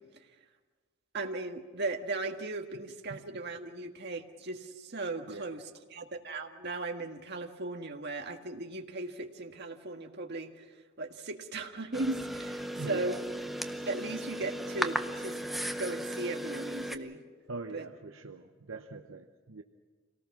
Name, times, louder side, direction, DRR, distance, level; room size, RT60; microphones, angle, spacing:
voice 1, 1.1-5.6 5.9-10.6 11.0-13.3 13.8-15.4 15.8-17.2 17.7-17.8, right 2 dB, 55° right, 4 dB, 1.6 m, -37 dB
sound 1, 11.9-17.0, right 1 dB, ahead, 0.7 m, -36 dB
voice 2, 12.7-13.2 17.5-19.6, right 3 dB, 75° right, 5 dB, 0.9 m, -42 dB
26.5 x 18.5 x 6.0 m, 1.4 s
head